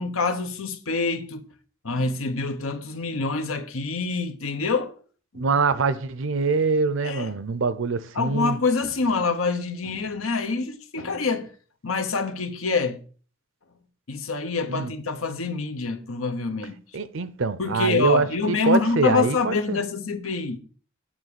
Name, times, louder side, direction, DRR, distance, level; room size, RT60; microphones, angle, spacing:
voice 1, 0.0-1.5 1.8-4.9 5.3-5.5 7.0-7.3 8.1-11.5 11.8-13.0 14.1-16.8 17.6-20.6, left 4 dB, 90° left, 1.0 m, -26 dB
voice 2, 5.3-8.6 14.7-14.9 16.9-19.8, right 4 dB, 70° right, 0.6 m, -24 dB
8.9 x 3.6 x 6.8 m
head